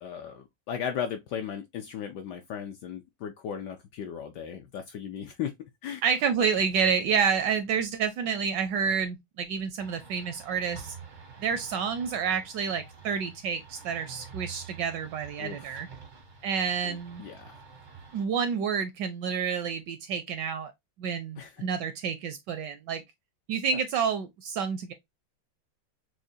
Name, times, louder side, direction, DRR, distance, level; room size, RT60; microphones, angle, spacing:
voice 1, 0.0-5.5 5.8-6.0 15.4-15.8 16.8-17.6 21.4-21.5, left 8 dB, 75° left, 1.0 m, -36 dB
voice 2, 6.0-11.0 11.4-15.9 16.4-17.2 18.1-20.7 21.0-23.0 23.5-24.9, right 6 dB, 75° right, 1.0 m, -29 dB
sound 1, 9.8-18.2, right 5 dB, 55° right, 0.5 m, -48 dB
6.2 x 2.2 x 2.6 m
omnidirectional pair, 2.2 m